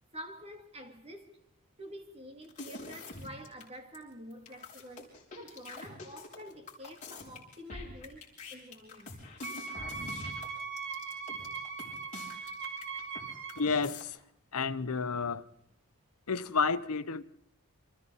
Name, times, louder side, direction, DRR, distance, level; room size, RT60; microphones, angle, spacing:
voice 1, 0.1-1.4 1.8-9.2, equal, 30° right, 2.6 m, -48 dB
sound 1, 2.4-3.6 3.9-4.0 4.3-13.2 13.5-14.0, left 2 dB, 35° left, 5.8 m, -45 dB
Wind instrument woodwind instrument, 9.4-13.7, right 5 dB, 55° right, 1.6 m, -40 dB
voice 2, 13.6-14.2 14.5-15.4 16.3-17.2, left 5 dB, 85° left, 0.9 m, -30 dB
29.5 x 25.0 x 4.1 m
head